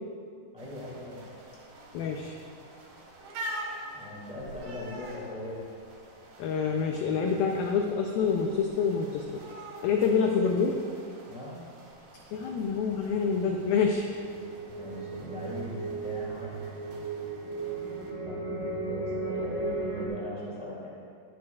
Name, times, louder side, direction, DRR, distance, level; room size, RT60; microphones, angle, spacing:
voice 1, 0.5-1.2 3.9-5.6 11.3-11.6 14.8-16.5 18.1-18.4 18.9-20.9, left 1 dB, 5° right, -7 dB, 0.8 m, -40 dB
sound 1, 0.6-18.1, right 1 dB, 85° right, 3.7 m, -46 dB
voice 2, 1.9-2.3 6.4-9.4 9.8-10.8 12.3-14.1, left 5 dB, 90° left, 2 dB, 2.0 m, -27 dB
sound 2, 13.6-20.1, right 3 dB, 70° right, 0.7 m, -35 dB
15.5 x 10.5 x 2.4 m, 2.3 s
omnidirectional pair, 4.9 m